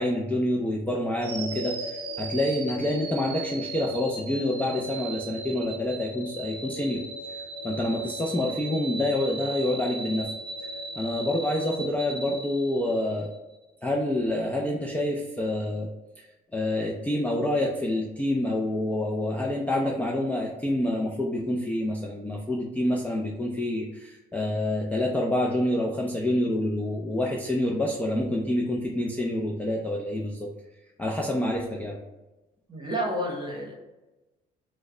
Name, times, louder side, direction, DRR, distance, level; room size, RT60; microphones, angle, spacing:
voice 1, 0.0-7.0 7.3-7.4 7.6-10.3 10.6-10.7 11.0-13.3 13.8-15.9 16.2-30.5 31.0-32.0, left 1 dB, 10° left, -2 dB, 0.4 m, -27 dB
sound 1, 1.2-13.3, right 2 dB, 75° right, 0.6 m, -37 dB
voice 2, 32.7-33.8, equal, 25° right, -1 dB, 1.0 m, -30 dB
3.0 x 2.1 x 3.6 m, 1.0 s
cardioid pair, 110°, 17 cm